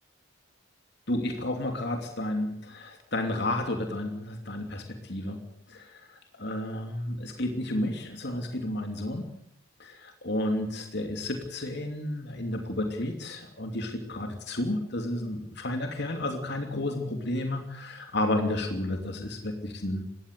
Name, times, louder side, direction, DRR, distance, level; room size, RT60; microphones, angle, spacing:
voice 1, 1.1-5.4 5.7-9.3 9.8-20.0, left 1 dB, 50° left, 4 dB, 2.9 m, -31 dB
20.5 x 17.5 x 8.3 m, 0.69 s
head